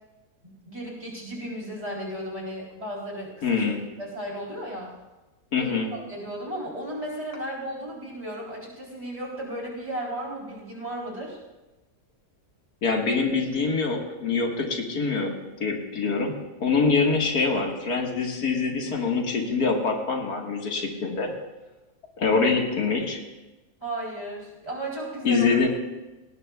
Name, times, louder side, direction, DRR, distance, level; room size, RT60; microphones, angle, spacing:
voice 1, 0.7-3.6 4.0-4.9 5.6-11.4 23.8-25.6, right 1 dB, 25° right, -4 dB, 3.8 m, -35 dB
voice 2, 3.4-3.8 5.5-5.9 12.8-15.3 15.6-16.3 16.6-21.3 22.2-23.2 25.2-25.7, left 4 dB, 85° left, 1 dB, 2.3 m, -24 dB
18.5 x 18.0 x 2.4 m, 1.1 s
omnidirectional pair, 1.6 m